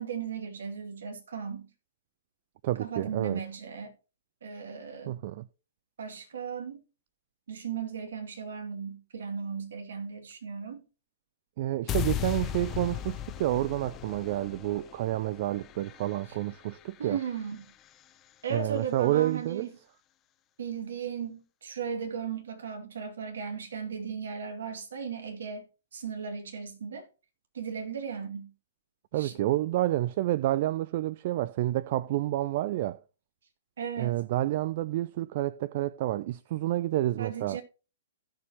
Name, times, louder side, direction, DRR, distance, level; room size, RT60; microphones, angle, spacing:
voice 1, 0.0-1.7 2.8-3.9 4.4-5.2 6.0-6.8 7.5-10.8 17.0-17.7 18.4-19.7 20.6-25.6 25.9-27.1 27.5-28.5 29.2-29.4 33.8-34.2 37.2-37.6, right 6 dB, 65° right, 2.2 m, -36 dB
voice 2, 2.6-3.4 5.1-5.5 11.6-17.2 18.5-19.7 29.1-33.0 34.0-37.6, right 15 dB, 45° right, 0.4 m, -29 dB
sound 1, 11.9-18.0, left 11 dB, 25° left, 0.5 m, -37 dB
16.0 x 6.8 x 2.9 m
figure-of-eight pair, 115°, 0 cm